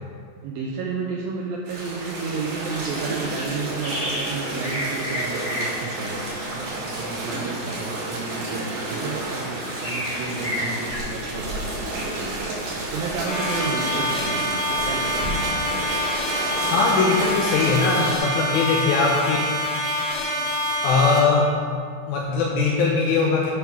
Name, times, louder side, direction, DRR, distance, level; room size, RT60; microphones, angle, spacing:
voice 1, 0.4-15.3, right 4 dB, 85° right, -2 dB, 2.0 m, -32 dB
sound 1, 1.7-18.2, right 2 dB, 65° right, 4.0 m, -31 dB
sound 2, 3.8-4.3 4.6-11.0, left 1 dB, 35° left, 1.5 m, -33 dB
sound 3, 13.3-21.2, equal, 65° left, 3.4 m, -26 dB
voice 2, 16.7-19.4 20.8-21.6 22.1-23.5, left 4 dB, 80° left, -1 dB, 2.2 m, -20 dB
10.5 x 3.6 x 6.0 m, 2.2 s
omnidirectional pair, 4.9 m